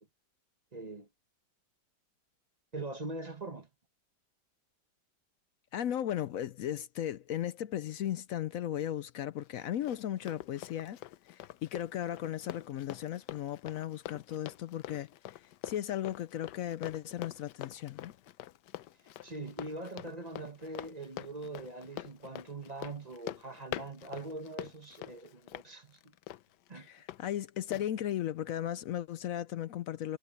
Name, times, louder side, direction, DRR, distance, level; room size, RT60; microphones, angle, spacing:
voice 1, 0.7-1.1 2.7-3.7 19.2-26.1 26.7-26.9, right 2 dB, 25° right, 1.5 m, -42 dB
voice 2, 5.7-11.0 11.3-18.1 26.7-30.2, left 11 dB, 70° left, 0.8 m, -36 dB
Run, 9.4-27.2 27.7-27.9, left 14 dB, 90° left, 1.3 m, -45 dB
omnidirectional pair, 1.8 m